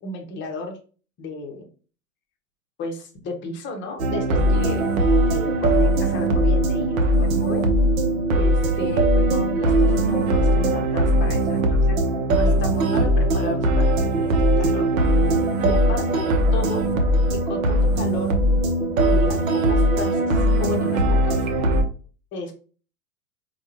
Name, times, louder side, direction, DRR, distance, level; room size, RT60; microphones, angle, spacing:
voice 1, 0.0-0.8 1.2-1.7 2.8-4.8 5.3-7.6 8.3-12.0 12.3-14.3 14.6-14.9 15.6-16.8 17.5-18.3 19.0-21.5 22.3-22.5, left 3 dB, 25° left, 3 dB, 0.8 m, -33 dB
sound 1, 4.0-21.8, right 1 dB, 60° right, 0.8 m, -20 dB
4.6 x 2.4 x 2.9 m, 0.38 s
figure-of-eight pair, 90°, 46 cm